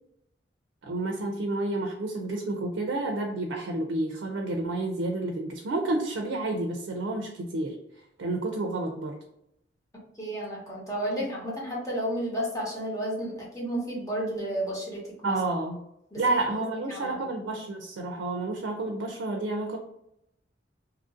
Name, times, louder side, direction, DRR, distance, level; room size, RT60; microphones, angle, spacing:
voice 1, 0.8-7.8 8.2-9.2 15.2-15.8 16.2-19.8, right 2 dB, 80° right, 3 dB, 0.4 m, -30 dB
voice 2, 10.2-15.3 16.1-16.2 16.9-17.2, right 1 dB, 20° left, -5 dB, 1.0 m, -32 dB
2.9 x 2.5 x 2.4 m, 0.81 s
head